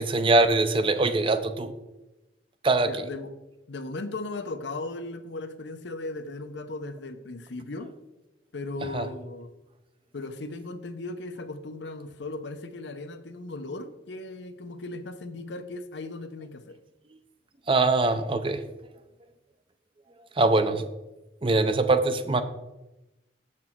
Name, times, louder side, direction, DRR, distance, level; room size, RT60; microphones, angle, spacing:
voice 1, 0.0-1.7 2.6-2.9 8.9-9.1 17.7-18.6 20.4-20.8 21.4-22.4, right 2 dB, 30° right, 10 dB, 0.5 m, -22 dB
voice 2, 2.8-3.3 3.7-7.9 8.5-9.5 10.1-16.8, left 2 dB, 80° left, 9 dB, 0.7 m, -37 dB
7.4 x 5.9 x 4.5 m, 0.99 s
head